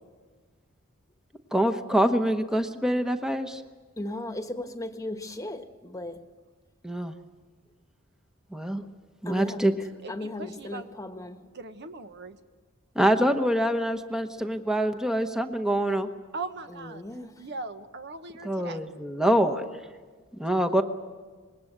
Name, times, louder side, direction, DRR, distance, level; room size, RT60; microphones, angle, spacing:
voice 1, 1.5-3.6 6.8-7.1 8.5-8.8 9.2-9.7 12.9-16.1 18.4-19.7 20.4-20.8, right 1 dB, 5° right, 6 dB, 1.0 m, -25 dB
voice 2, 4.0-6.2 9.3-9.7 10.1-11.4 16.9-17.4, left 1 dB, 15° left, 7 dB, 1.3 m, -36 dB
voice 3, 10.0-10.9 11.5-12.4 16.3-17.0 17.4-18.9, right 3 dB, 55° right, 8 dB, 1.1 m, -39 dB
25.5 x 21.0 x 8.0 m, 1.5 s
head